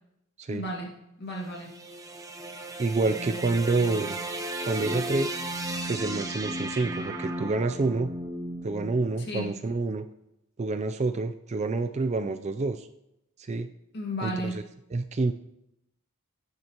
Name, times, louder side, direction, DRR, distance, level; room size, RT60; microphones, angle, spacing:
voice 1, 0.5-1.7 9.3-9.5 13.9-14.6, equal, 50° left, 0 dB, 1.9 m, -34 dB
sound 1, 1.4-9.7, right 1 dB, 15° right, 0.8 m, -35 dB
voice 2, 2.8-4.2 4.6-5.4 5.9-8.1 8.6-10.0 10.6-12.9 13.4-13.7 14.2-14.6 14.9-15.3, right 3 dB, 30° right, 9 dB, 0.4 m, -28 dB
16.5 x 9.4 x 3.0 m, 0.83 s
head